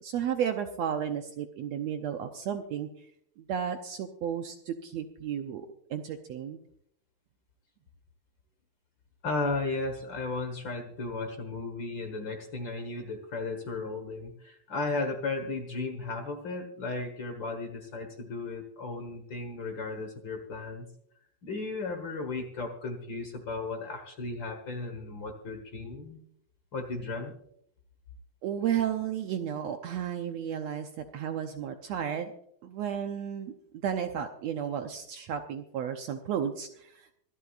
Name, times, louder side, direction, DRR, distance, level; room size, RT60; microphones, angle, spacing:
voice 1, 0.0-2.9 3.4-6.6 28.4-32.3 32.6-33.5 33.8-37.1, right 9 dB, 70° right, 5 dB, 1.8 m, -33 dB
voice 2, 9.2-20.9 21.4-26.2 26.7-27.3, left 3 dB, 45° left, 5 dB, 1.7 m, -35 dB
25.5 x 11.0 x 2.5 m, 0.70 s
omnidirectional pair, 3.7 m